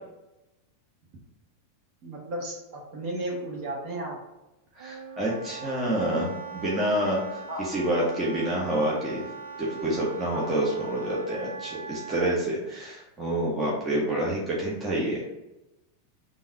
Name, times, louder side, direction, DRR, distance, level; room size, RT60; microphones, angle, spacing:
voice 1, 2.0-4.2 7.5-7.6 10.3-10.5, right 1 dB, 45° right, -1 dB, 1.2 m, -34 dB
voice 2, 4.8-9.2 9.6-15.2, right 1 dB, 20° right, -4 dB, 0.9 m, -28 dB
Wind instrument woodwind instrument, 4.8-12.4, right 5 dB, 65° right, 0.5 m, -41 dB
3.7 x 2.6 x 4.5 m, 0.98 s
figure-of-eight pair, 90°, 0 cm